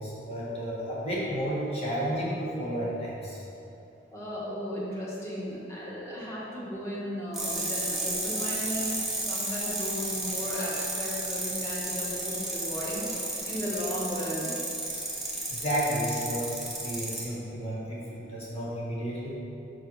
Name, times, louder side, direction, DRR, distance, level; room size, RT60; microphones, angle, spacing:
voice 1, 0.0-3.4 15.5-19.3, equal, 35° left, -6 dB, 1.5 m, -32 dB
voice 2, 4.1-9.0 9.3-14.6, equal, 15° left, -7 dB, 1.4 m, -35 dB
sound 1, 7.3-17.2, right 2 dB, ahead, 1.1 m, -33 dB
6.2 x 4.7 x 4.7 m, 2.8 s
head